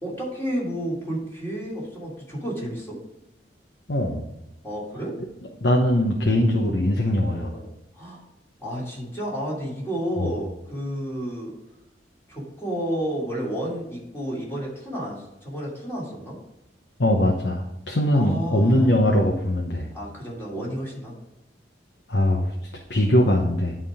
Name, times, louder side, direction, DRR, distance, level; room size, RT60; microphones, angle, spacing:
voice 1, 0.0-3.0 4.6-5.1 7.3-7.7 7.9-8.2 8.6-11.5 12.3-16.4 18.1-19.0 19.9-21.1, equal, 15° left, -6 dB, 2.8 m, -31 dB
voice 2, 3.9-4.2 5.6-7.5 10.2-10.3 17.0-19.9 22.1-22.5 22.9-23.8, left 1 dB, 65° left, 0 dB, 1.0 m, -21 dB
11.0 x 3.7 x 4.9 m, 0.92 s
head